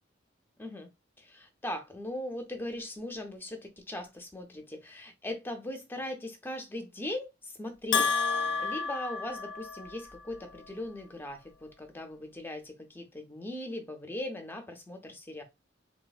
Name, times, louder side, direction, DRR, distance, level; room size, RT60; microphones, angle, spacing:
voice 1, 0.6-0.9 1.2-15.4, left 1 dB, 10° left, 0.5 m, -39 dB
Bell, 7.9-10.1, left 5 dB, 70° left, 0.4 m, -30 dB
3.3 x 2.0 x 2.3 m
head